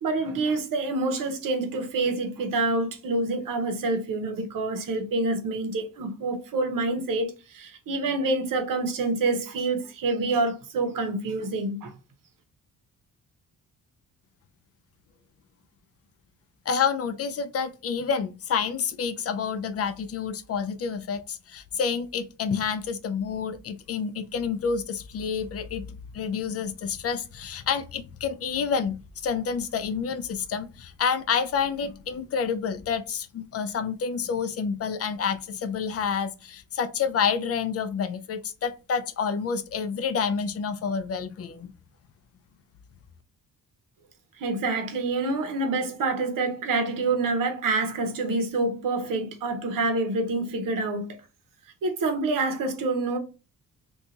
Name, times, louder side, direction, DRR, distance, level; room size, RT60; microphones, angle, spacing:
voice 1, 0.0-11.9 44.4-51.2 51.8-53.2, right 3 dB, 70° right, 0.9 m, -27 dB
voice 2, 16.7-41.7, left 6 dB, 45° left, 0.4 m, -29 dB
2.7 x 2.3 x 3.9 m
cardioid pair, 125°, 34 cm